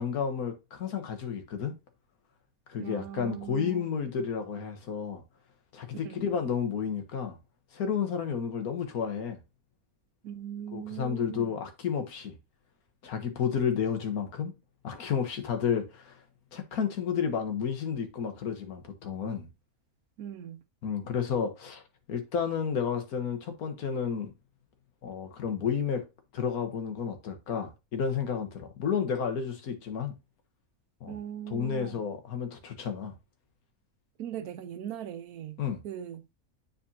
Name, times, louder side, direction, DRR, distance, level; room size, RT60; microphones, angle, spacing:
voice 1, 0.0-1.8 2.7-5.2 5.7-7.4 7.7-9.4 10.7-12.3 13.0-14.5 14.8-16.2 16.5-19.5 20.8-21.8 22.1-24.3 25.0-26.0 26.3-30.2 31.0-31.1 31.5-33.1 35.6-35.8, left 7 dB, 80° left, 1.6 m, -31 dB
voice 2, 2.8-3.8 5.9-6.3 10.2-11.6 20.2-20.6 31.1-32.0 34.2-36.3, right 10 dB, 85° right, 1.3 m, -40 dB
9.6 x 4.3 x 2.8 m
omnidirectional pair, 1.5 m